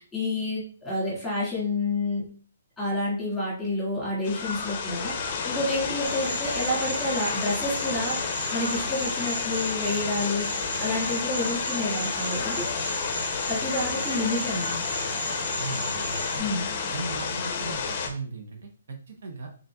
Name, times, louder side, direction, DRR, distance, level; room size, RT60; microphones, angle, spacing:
voice 1, 0.1-2.3 2.8-5.1 5.4-8.2 8.5-10.5 10.8-12.6 13.5-14.8 16.4-16.7, left 2 dB, ahead, -9 dB, 1.8 m, -29 dB
sound 1, 4.2-18.1, left 5 dB, 30° left, 0.6 m, -30 dB
sound 2, 6.0-16.4, right 2 dB, 90° right, 0.8 m, -36 dB
voice 2, 15.6-16.5 16.9-19.5, right 4 dB, 60° right, 4 dB, 0.7 m, -38 dB
4.0 x 3.7 x 2.2 m, 0.42 s
hypercardioid pair, 170°, 0 cm